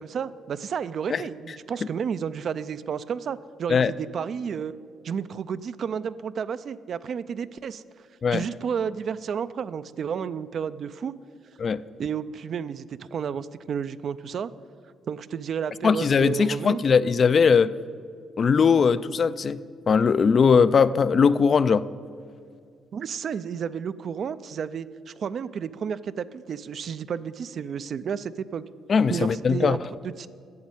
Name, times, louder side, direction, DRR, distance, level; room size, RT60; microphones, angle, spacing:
voice 1, 0.0-4.7 5.0-7.8 8.3-11.1 12.0-14.5 15.1-16.8 22.9-28.6 29.1-30.3, right 7 dB, 55° right, 0.4 m, -31 dB
voice 2, 15.8-17.7 18.4-19.6 19.9-21.8 28.9-29.8, left 6 dB, 45° left, 0.3 m, -20 dB
9.4 x 7.2 x 8.9 m
cardioid pair, 90°, 0 cm